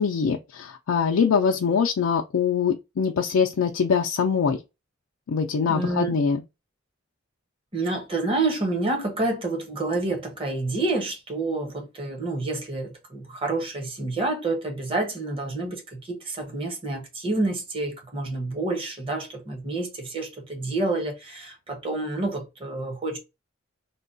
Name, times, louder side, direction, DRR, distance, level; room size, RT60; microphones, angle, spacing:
voice 1, 0.0-4.6 5.3-6.4, left 6 dB, 85° left, 0.4 m, -23 dB
voice 2, 5.7-6.2 7.7-23.2, right 2 dB, 25° right, 0.8 m, -28 dB
3.7 x 2.2 x 2.6 m
head